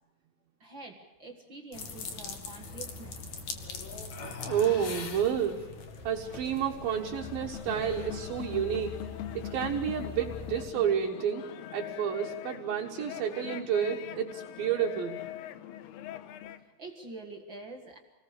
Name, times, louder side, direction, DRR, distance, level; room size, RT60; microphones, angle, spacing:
voice 1, 0.6-3.2 16.6-18.0, right 3 dB, 40° right, 2 dB, 1.8 m, -46 dB
sound 1, 1.7-10.7, left 5 dB, 50° left, 3.0 m, -41 dB
voice 2, 4.5-5.7 6.0-9.0 9.3-11.4 11.7-15.2, right 8 dB, 65° right, 1 dB, 3.1 m, -30 dB
sound 2, 6.8-16.6, left 12 dB, 80° left, 3.0 m, -42 dB
27.0 x 20.0 x 6.7 m, 1.1 s
omnidirectional pair, 4.7 m